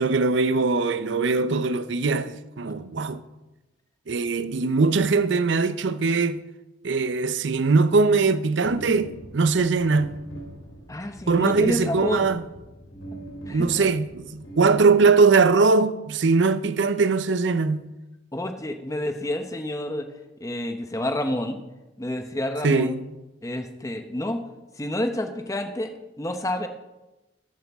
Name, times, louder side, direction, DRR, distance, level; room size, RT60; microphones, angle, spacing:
voice 1, 0.0-3.2 4.1-6.4 6.8-10.2 11.3-12.4 13.5-17.9 22.6-23.0, right 4 dB, 65° right, 0.6 m, -21 dB
sound 1, 8.6-15.2, right 1 dB, 85° left, 3.1 m, -42 dB
voice 2, 10.9-12.3 13.5-13.9 18.3-20.1 20.4-21.6 22.0-23.0 23.4-24.4 24.8-26.7, left 1 dB, 15° left, 0.8 m, -29 dB
13.5 x 11.5 x 3.5 m
head